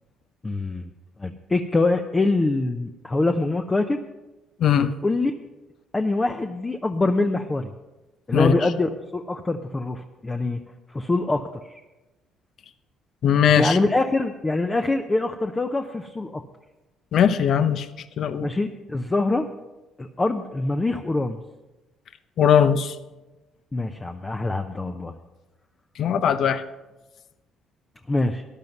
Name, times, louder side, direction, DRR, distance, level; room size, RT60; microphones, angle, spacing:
voice 1, 0.4-0.9 1.2-4.0 5.0-5.3 5.9-7.7 8.3-10.6 10.9-11.7 13.6-16.4 18.4-19.5 20.0-21.4 23.7-25.1 28.1-28.4, left 2 dB, 20° left, 6 dB, 0.7 m, -24 dB
voice 2, 4.6-4.9 8.3-8.5 13.2-13.8 17.1-17.9 18.2-18.5 22.4-23.0 26.0-26.6, left 8 dB, 60° left, 12 dB, 0.8 m, -19 dB
14.0 x 10.5 x 5.4 m, 1.1 s
cardioid pair, 90°, 0 cm